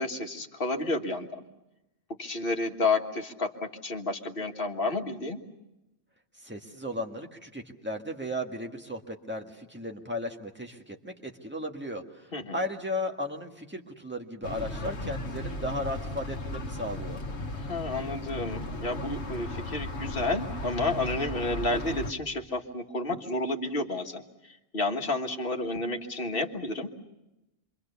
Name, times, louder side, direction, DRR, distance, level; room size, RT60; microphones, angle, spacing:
voice 1, 0.0-1.4 2.2-5.4 12.3-12.6 17.6-26.9, left 2 dB, 55° left, 2 dB, 1.9 m, -31 dB
voice 2, 6.4-17.2, left 1 dB, 10° right, 2 dB, 1.7 m, -35 dB
sound 1, 14.4-22.1, left 1 dB, 85° left, 1.4 m, -36 dB
26.5 x 24.5 x 6.9 m, 0.95 s
omnidirectional pair, 1.1 m